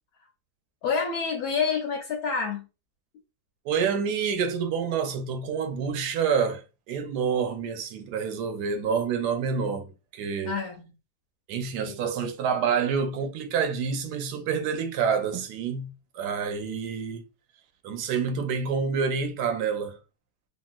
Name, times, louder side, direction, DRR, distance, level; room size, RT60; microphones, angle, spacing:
voice 1, 0.8-2.7 10.4-10.8 11.9-12.0, left 5 dB, 75° left, 1.1 m, -28 dB
voice 2, 3.7-10.6 11.5-17.2 17.8-20.0, right 6 dB, 80° right, 1.2 m, -28 dB
2.9 x 2.6 x 2.4 m
omnidirectional pair, 1.7 m